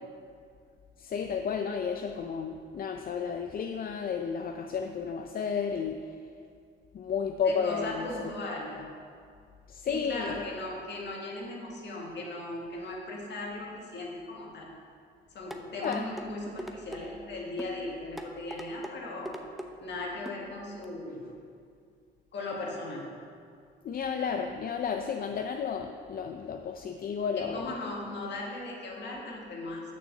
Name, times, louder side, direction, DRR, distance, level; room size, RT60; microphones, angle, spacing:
voice 1, 1.0-6.0 6.9-8.3 9.7-10.4 15.8-16.1 23.8-27.7, left 6 dB, 50° left, 4 dB, 0.5 m, -32 dB
voice 2, 7.5-8.9 9.8-14.7 15.3-19.4 19.8-21.3 22.3-23.1 27.4-29.8, left 2 dB, 65° left, -2 dB, 1.9 m, -38 dB
sound 1, 15.5-16.3 16.6-17.0 17.6-17.8 18.2-18.9 19.3-19.7 20.3-20.4 20.8-20.9, equal, ahead, 0.7 m, -40 dB
6.7 x 6.4 x 6.4 m, 2.3 s
cardioid pair, 90°, 20 cm